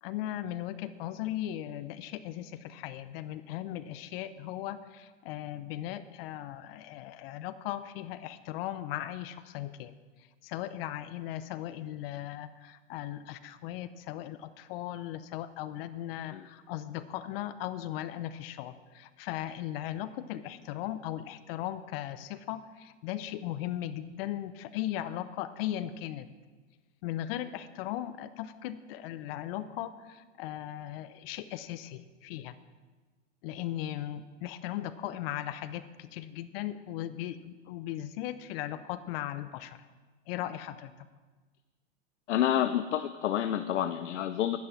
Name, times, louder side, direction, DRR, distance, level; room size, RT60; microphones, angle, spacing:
voice 1, 0.0-9.9 10.4-26.3 27.0-32.5 33.4-39.8 40.3-40.9, left 12 dB, 55° left, 13 dB, 0.9 m, -37 dB
voice 2, 42.3-44.6, left 11 dB, 85° left, 11 dB, 0.7 m, -28 dB
11.5 x 10.5 x 6.0 m, 1.3 s
hypercardioid pair, 120°, 35 cm